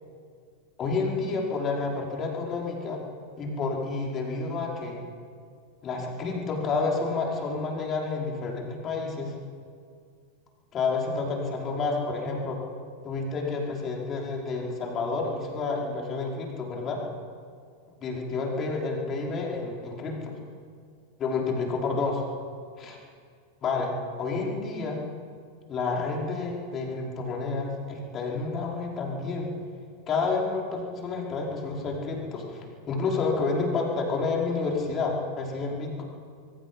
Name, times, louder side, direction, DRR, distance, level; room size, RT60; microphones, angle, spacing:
voice 1, 0.8-3.0 3.4-5.0 5.8-9.3 10.7-12.6 13.0-17.0 18.0-20.4 21.2-22.2 22.8-23.0 23.6-25.0 25.7-29.5 30.1-36.0, left 4 dB, 30° left, -1 dB, 5.0 m, -29 dB
25.0 x 23.5 x 5.6 m, 2.2 s
figure-of-eight pair, 90°, 0 cm